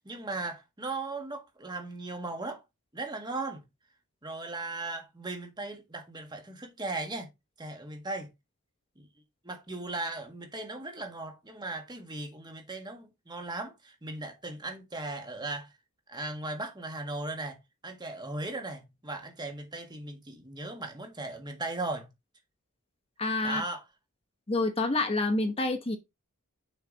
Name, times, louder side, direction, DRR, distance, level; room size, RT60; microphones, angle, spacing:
voice 1, 0.0-2.6 2.9-3.6 4.2-7.3 7.6-8.3 9.0-9.1 9.4-15.7 16.1-22.1 23.4-23.8, right 2 dB, 20° right, 1.5 m, -37 dB
voice 2, 23.2-23.6 24.5-26.0, left 2 dB, 25° left, 0.8 m, -28 dB
6.6 x 3.9 x 5.1 m
head